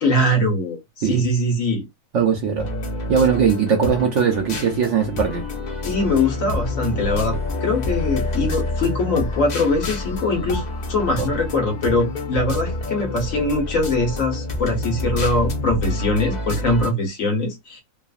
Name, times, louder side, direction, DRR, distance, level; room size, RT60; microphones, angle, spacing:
voice 1, 0.0-0.8 1.0-1.8 5.8-17.8, left 2 dB, 60° left, 1.4 m, -22 dB
voice 2, 2.1-2.7 3.1-5.4 11.2-11.3, right 7 dB, 65° right, 0.8 m, -20 dB
sound 1, 2.6-16.9, left 2 dB, 80° left, 0.4 m, -27 dB
3.2 x 2.0 x 2.4 m
omnidirectional pair, 1.6 m